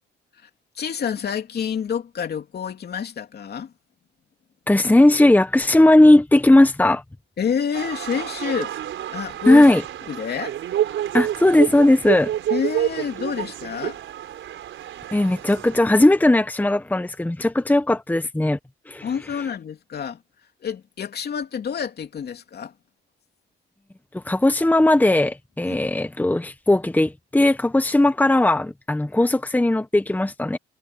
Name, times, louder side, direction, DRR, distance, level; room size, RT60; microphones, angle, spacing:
voice 1, 0.8-3.7 7.4-8.7 9.1-9.6 10.1-10.5 12.5-14.0 19.0-20.2 20.6-22.7 25.7-25.8, left 7 dB, 55° left, 2.9 m, -28 dB
voice 2, 4.7-7.0 9.5-9.8 11.1-12.3 15.1-18.6 18.9-19.1 24.1-30.6, left 1 dB, 10° left, 1.4 m, -17 dB
sound 1, 7.7-15.8, right 11 dB, 75° right, 5.2 m, -28 dB
cardioid pair, 90°, 20 cm